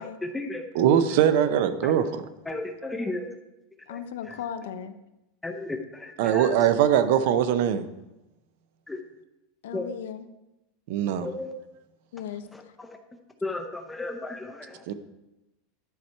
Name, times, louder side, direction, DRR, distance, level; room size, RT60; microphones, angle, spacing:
voice 1, 0.0-1.0 1.8-1.9 2.5-3.3 3.9-4.0 4.3-4.4 5.4-6.5 8.9-9.0 9.7-9.9 11.2-11.5 12.5-13.0 13.4-14.9, left 2 dB, 5° left, 4 dB, 0.6 m, -34 dB
voice 2, 0.7-2.2 6.2-7.9 10.9-11.3 14.9-15.0, right 9 dB, 55° right, 12 dB, 0.6 m, -22 dB
voice 3, 3.9-5.0 9.6-10.3 12.1-12.5, left 8 dB, 90° left, 11 dB, 0.6 m, -36 dB
11.5 x 4.4 x 4.5 m, 0.95 s
supercardioid pair, 170°, 0 cm